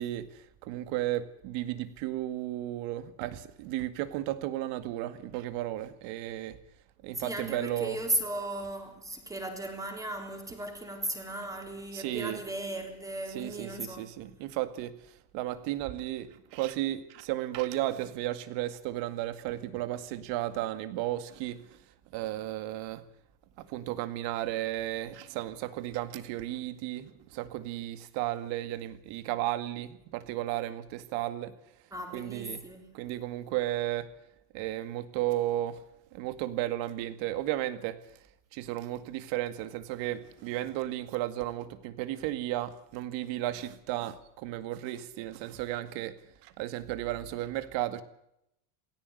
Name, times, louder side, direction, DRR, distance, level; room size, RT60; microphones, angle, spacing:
voice 1, 0.0-6.6 7.0-8.0 11.9-12.4 13.3-21.8 22.1-23.0 23.6-31.5 32.1-32.6 32.9-34.1 34.5-35.8 36.1-38.0 38.5-46.2 46.4-48.0, right 14 dB, 65° right, 2.1 m, -34 dB
voice 2, 7.2-14.0 31.9-32.9, right 1 dB, 5° right, 3.6 m, -36 dB
17.5 x 16.5 x 9.7 m
cardioid pair, 165°, 46 cm